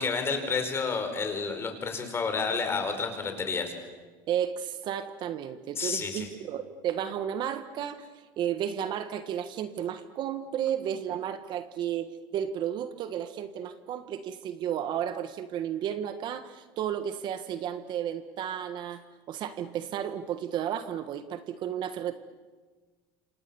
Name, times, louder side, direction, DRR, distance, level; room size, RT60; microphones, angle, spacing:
voice 1, 0.0-3.7 5.7-6.3, left 4 dB, 25° left, 6 dB, 4.9 m, -30 dB
voice 2, 4.3-8.1 8.4-22.2, right 9 dB, 45° right, 11 dB, 1.5 m, -33 dB
28.0 x 28.0 x 7.1 m, 1.4 s
cardioid pair, 140°, 10 cm